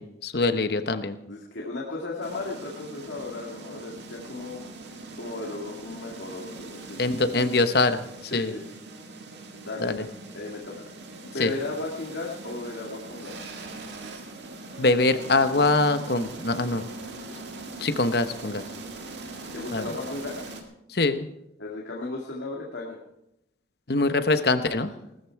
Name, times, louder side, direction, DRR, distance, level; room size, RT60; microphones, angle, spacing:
voice 1, 0.0-1.2 7.0-8.0 8.3-8.5 9.8-10.0 11.4-11.5 14.8-16.8 17.8-18.6 19.7-19.9 20.9-21.3 23.9-24.9, left 2 dB, 55° left, 10 dB, 1.0 m, -23 dB
voice 2, 1.3-4.7 5.2-7.5 8.3-8.6 9.6-10.1 10.3-10.9 11.2-13.5 19.5-20.6 21.6-23.0, left 2 dB, 85° left, -2 dB, 2.2 m, -35 dB
sound 1, 2.2-20.6, right 2 dB, 70° right, 2.0 m, -41 dB
18.5 x 13.5 x 4.7 m, 0.86 s
head